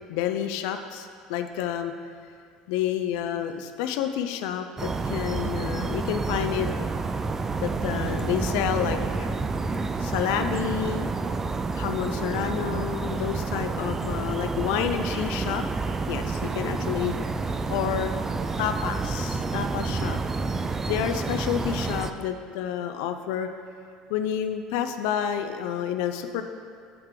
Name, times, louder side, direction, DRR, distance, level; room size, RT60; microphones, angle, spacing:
voice 1, 0.1-1.9 2.7-6.7 7.6-9.3 10.0-11.1 11.8-15.6 16.1-17.2 17.7-18.1 18.6-20.2 20.9-23.5 24.1-26.4, left 9 dB, 85° left, 8 dB, 0.4 m, -29 dB
sound 1, 4.8-22.1, right 4 dB, 20° right, 0.3 m, -29 dB
7.6 x 3.7 x 6.5 m, 2.2 s
cardioid pair, 125°, 2 cm